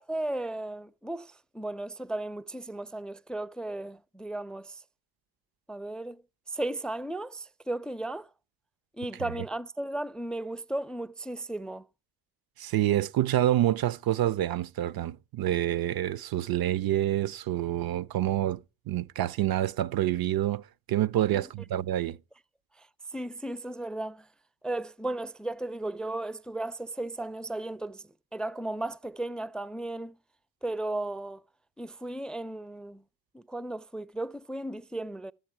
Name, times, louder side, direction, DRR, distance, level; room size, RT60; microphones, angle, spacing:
voice 1, 0.0-4.8 5.7-6.2 6.5-8.3 9.0-11.9 21.3-21.4 22.8-22.9 23.1-24.3 24.6-28.0 28.3-30.2 30.6-31.4 31.8-33.0 33.3-35.3, right 2 dB, ahead, 0.5 m, -35 dB
voice 2, 12.6-22.2, right 13 dB, 50° right, 0.6 m, -27 dB
13.0 x 8.4 x 4.5 m
supercardioid pair, 60°, 47 cm